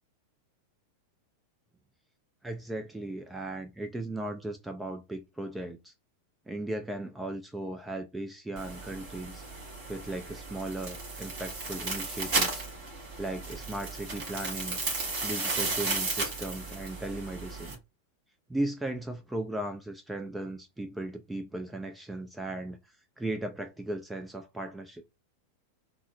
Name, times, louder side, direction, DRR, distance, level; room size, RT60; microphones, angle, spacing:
voice 1, 2.4-5.9 6.5-9.4 9.9-12.7 13.2-14.8 15.2-17.8 18.5-25.0, right 1 dB, 5° right, 0.4 m, -37 dB
sound 1, 8.6-17.7, right 3 dB, 45° right, 1.7 m, -34 dB
3.7 x 2.0 x 2.7 m
figure-of-eight pair, 90°, 0 cm